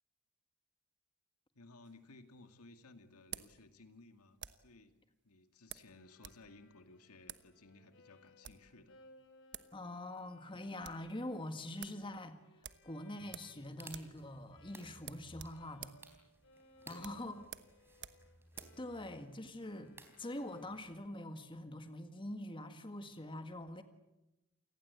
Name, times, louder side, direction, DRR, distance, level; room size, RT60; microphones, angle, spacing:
voice 1, 1.5-4.9 5.2-9.0 16.8-17.3, left 2 dB, 90° left, 8 dB, 2.2 m, -59 dB
sound 1, 1.8-4.8 5.7-6.4 6.7-6.8 7.2-7.5 8.2-8.7 9.2-9.3 9.5-9.8 10.1-10.2 10.5-11.1 11.4-11.5 11.8-12.0 12.6-13.6 13.8-14.2 14.5-14.6 15.0-18.8, right 10 dB, 55° right, 1.2 m, -51 dB
Bowed string instrument, 5.9-15.2 15.5-21.3, left 2 dB, 60° left, 2.6 m, -66 dB
voice 2, 9.7-12.4 12.8-15.9 16.9-17.4 18.8-23.8, left 1 dB, 25° left, 8 dB, 1.8 m, -44 dB
sound 2, 13.2-21.0, right 2 dB, 10° right, 3.9 m, -59 dB
28.5 x 19.0 x 8.2 m, 0.95 s
head